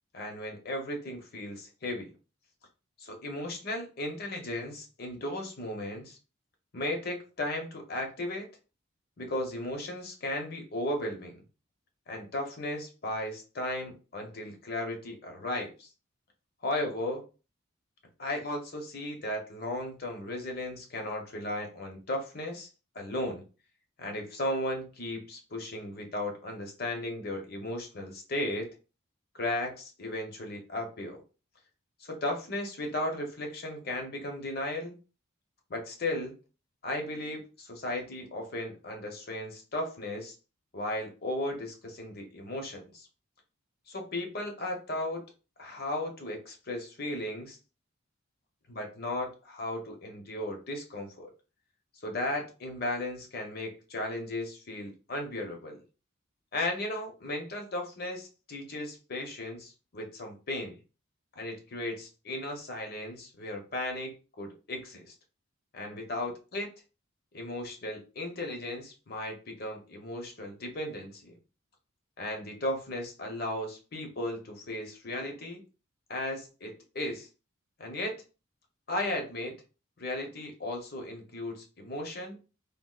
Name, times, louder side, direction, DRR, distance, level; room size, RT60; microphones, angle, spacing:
voice 1, 0.1-2.1 3.0-6.2 6.7-8.5 9.2-11.4 12.1-15.9 16.6-17.2 18.2-22.7 22.9-23.4 24.0-28.7 29.3-31.2 32.0-35.0 35.7-36.4 36.8-40.3 40.7-43.1 43.9-45.2 45.6-47.6 48.7-51.3 52.0-55.8 56.5-60.8 61.4-65.1 65.7-66.7 67.3-71.4 72.2-75.6 76.1-77.3 77.8-78.2 78.9-79.6 80.0-82.4, left 1 dB, 45° left, 3 dB, 0.8 m, -35 dB
3.5 x 2.4 x 2.3 m, 0.33 s
head